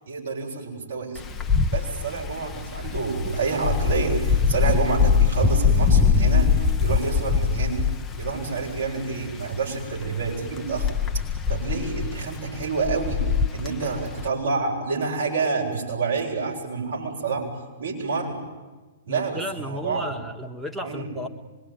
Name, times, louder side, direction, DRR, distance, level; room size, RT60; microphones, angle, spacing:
voice 1, 0.1-1.2 1.7-7.9 8.2-10.9 11.5-17.5 17.8-18.4 19.1-20.1 20.8-21.1, right 4 dB, 70° right, -2 dB, 7.8 m, -28 dB
Wind, 1.2-14.3, left 6 dB, 15° left, 1.0 m, -23 dB
voice 2, 19.1-21.3, equal, 10° right, 7 dB, 1.7 m, -33 dB
25.5 x 22.5 x 9.5 m, 1.3 s
figure-of-eight pair, 110°, 0 cm